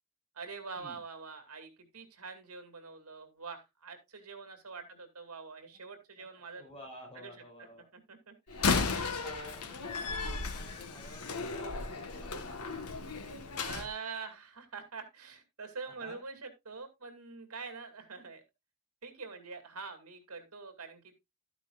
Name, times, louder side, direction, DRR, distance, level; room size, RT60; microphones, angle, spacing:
voice 1, 0.3-6.6 7.2-7.3 7.6-7.7 7.9-8.7 13.6-18.4 19.0-21.1, right 4 dB, 75° right, 7 dB, 2.4 m, -45 dB
voice 2, 6.2-7.9 8.7-13.0 15.9-16.2, left 1 dB, 25° left, 0 dB, 5.4 m, -51 dB
Slam, 8.5-13.9, left 4 dB, 85° left, 1.3 m, -34 dB
13.0 x 9.0 x 2.4 m, 0.21 s
head